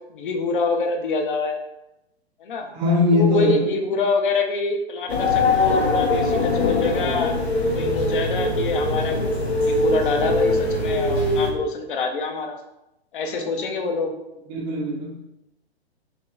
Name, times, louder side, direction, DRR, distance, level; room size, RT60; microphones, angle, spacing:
voice 1, 0.1-1.6 2.4-2.7 3.1-9.2 9.6-12.6 13.1-14.1, left 3 dB, 50° left, 4 dB, 0.7 m, -25 dB
voice 2, 2.7-3.6 13.3-13.5 14.5-15.2, left 3 dB, 20° right, -2 dB, 0.5 m, -21 dB
sound 1, 5.1-11.5, left 2 dB, 70° left, 1.2 m, -22 dB
5.6 x 2.9 x 2.4 m, 0.89 s
figure-of-eight pair, 120°, 33 cm